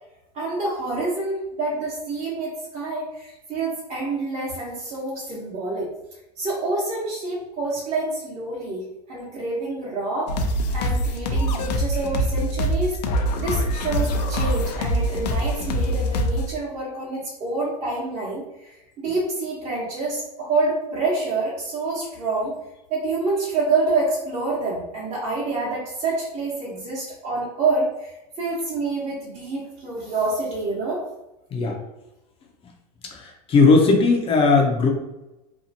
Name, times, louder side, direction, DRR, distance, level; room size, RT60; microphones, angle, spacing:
voice 1, 0.3-5.9 6.4-22.5 22.9-31.0, right 3 dB, 35° right, -8 dB, 1.0 m, -27 dB
sound 1, 10.3-16.5, equal, 90° left, 0.5 m, -24 dB
voice 2, 33.1-34.9, left 3 dB, 25° left, 2 dB, 0.5 m, -17 dB
2.8 x 2.4 x 2.7 m, 0.95 s
supercardioid pair, 120°, 20 cm